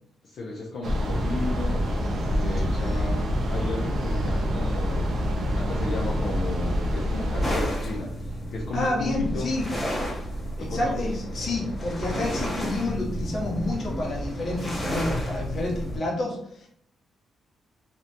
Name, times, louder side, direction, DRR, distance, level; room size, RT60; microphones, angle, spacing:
voice 1, 0.2-1.8 2.3-5.3 5.5-9.5 10.6-11.1, left 3 dB, 60° left, -2 dB, 0.4 m, -33 dB
sound 1, 0.8-7.7, equal, 45° right, 0.4 m, -26 dB
sound 2, 7.4-16.0, equal, 15° left, 0.7 m, -31 dB
voice 2, 8.7-9.7 10.6-16.7, left 2 dB, 40° left, -3 dB, 0.9 m, -29 dB
2.5 x 2.1 x 2.8 m, 0.70 s
cardioid pair, 150°, 0 cm